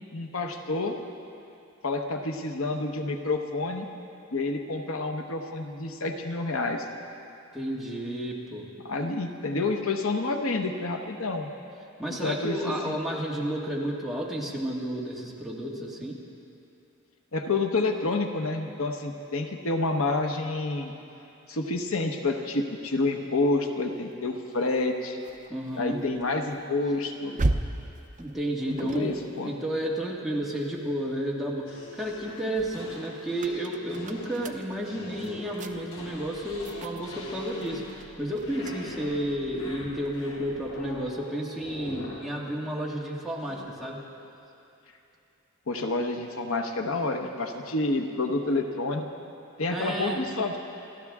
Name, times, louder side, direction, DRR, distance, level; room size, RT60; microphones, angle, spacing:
voice 1, 0.1-1.0 1.8-3.9 4.3-6.9 8.9-11.5 12.1-13.0 17.3-20.9 21.5-25.2 25.7-27.4 28.7-29.5 45.7-49.1 49.6-50.6, left 2 dB, 75° left, 4 dB, 1.1 m, -29 dB
voice 2, 7.5-8.7 12.0-16.2 25.5-26.0 28.2-44.0 49.7-50.2, right 1 dB, ahead, -4 dB, 1.8 m, -32 dB
sound 1, 24.5-31.0 31.5-41.3, right 2 dB, 35° right, 0.6 m, -38 dB
sound 2, 31.6-38.1 38.4-39.3 39.6-41.2 41.6-42.3 43.4-43.6, left 2 dB, 90° left, 4.1 m, -43 dB
29.0 x 13.0 x 3.6 m, 2.7 s
head